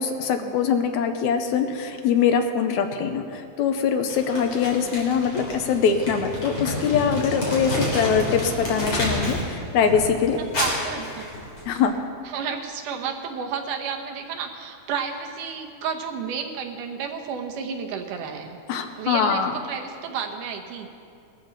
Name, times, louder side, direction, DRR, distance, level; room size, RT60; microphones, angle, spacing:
voice 1, 0.0-10.4 11.7-11.9 18.7-19.5, left 7 dB, 75° left, 6 dB, 2.0 m, -23 dB
Crumpling crinkling, 4.1-9.5 9.8-11.8, left 1 dB, 40° left, 4.3 m, -29 dB
voice 2, 10.4-11.3 12.2-18.6 19.0-20.9, right 6 dB, 80° right, 4 dB, 2.6 m, -32 dB
19.5 x 13.5 x 4.0 m, 2.5 s
omnidirectional pair, 3.6 m